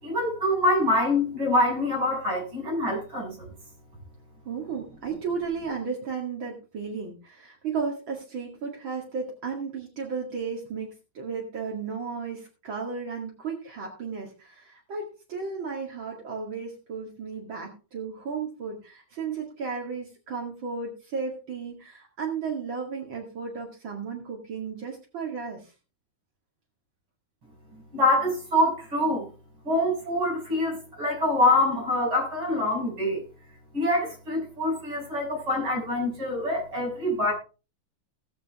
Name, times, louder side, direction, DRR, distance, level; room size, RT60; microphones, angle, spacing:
voice 1, 0.0-3.3 27.9-29.3 29.7-33.2 33.7-37.3, left 1 dB, 90° right, -2 dB, 7.2 m, -25 dB
voice 2, 4.5-10.9 11.1-25.7, right 5 dB, 70° right, -1 dB, 3.0 m, -34 dB
19.0 x 7.3 x 3.6 m, 0.33 s
omnidirectional pair, 2.2 m